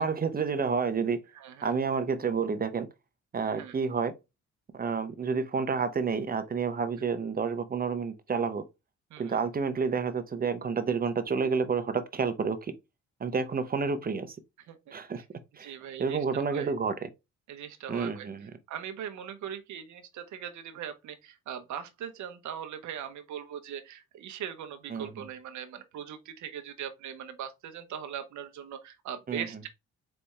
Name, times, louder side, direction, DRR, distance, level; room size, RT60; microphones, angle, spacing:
voice 1, 0.0-1.2 1.6-2.9 3.3-4.1 4.7-8.6 9.2-12.7 13.2-14.4 14.9-15.2 15.6-17.1 17.9-18.5 24.9-25.1 29.3-29.4, right 5 dB, 30° right, 0.7 m, -29 dB
voice 2, 1.3-1.7 3.6-3.8 7.0-7.1 9.1-9.4 14.7-14.8 15.2-15.3 15.6-16.7 17.5-18.3 18.7-29.7, right 9 dB, 70° right, 0.9 m, -40 dB
4.2 x 3.4 x 3.2 m
cardioid pair, 90°, 30 cm